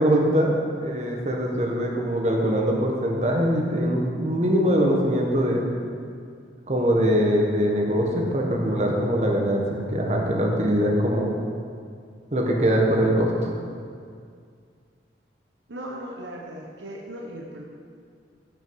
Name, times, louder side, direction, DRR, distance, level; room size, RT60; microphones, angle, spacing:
voice 1, 0.0-5.6 6.7-11.3 12.3-13.5, equal, 40° right, 0 dB, 1.3 m, -22 dB
voice 2, 15.7-17.6, right 1 dB, 85° right, -1 dB, 1.1 m, -37 dB
15.0 x 5.6 x 4.8 m, 2.2 s
head